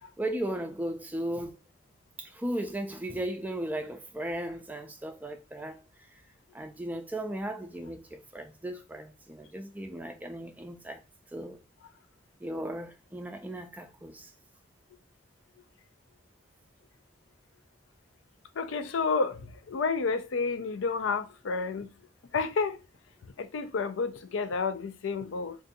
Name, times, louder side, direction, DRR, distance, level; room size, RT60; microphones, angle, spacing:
voice 1, 0.2-1.6 2.2-5.8 6.5-11.0 11.3-11.6 12.4-14.3, right 1 dB, 10° right, 0.4 m, -36 dB
voice 2, 18.6-19.4 19.7-21.9 22.3-22.8 23.4-25.6, left 4 dB, 85° left, 0.4 m, -30 dB
2.6 x 2.6 x 3.9 m
head